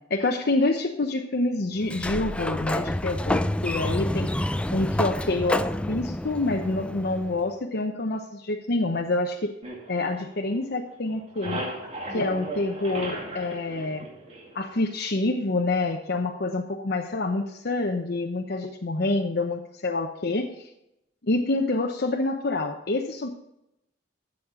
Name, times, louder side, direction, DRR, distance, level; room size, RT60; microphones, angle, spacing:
voice 1, 0.1-4.3 4.7-9.5 9.9-11.6 12.1-14.1 14.5-20.5 21.2-23.3, left 2 dB, 60° left, 2 dB, 0.8 m, -27 dB
Sliding door, 1.8-7.5, left 1 dB, 5° left, 0.3 m, -28 dB
sound 1, 9.6-10.8 11.1-14.8, right 1 dB, 35° right, 2.4 m, -36 dB
13.0 x 7.4 x 3.7 m, 0.85 s
head